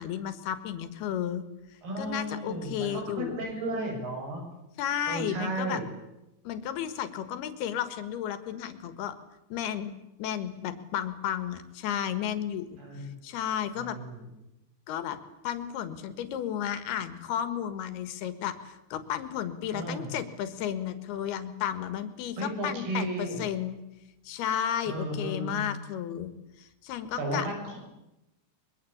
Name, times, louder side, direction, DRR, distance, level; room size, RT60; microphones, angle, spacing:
voice 1, 0.0-1.4 2.0-3.5 4.8-5.8 6.5-9.2 9.5-9.9 10.2-14.0 14.9-15.2 15.4-23.8 24.3-26.3 26.6-27.5, left 10 dB, 75° left, 11 dB, 3.5 m, -33 dB
voice 2, 1.8-4.4 5.1-5.9 12.8-13.1 13.8-14.2 19.7-20.1 22.4-23.4 24.9-25.6 27.2-27.8, right 1 dB, 65° right, 3 dB, 8.4 m, -34 dB
24.5 x 22.5 x 8.6 m, 0.93 s
omnidirectional pair, 4.8 m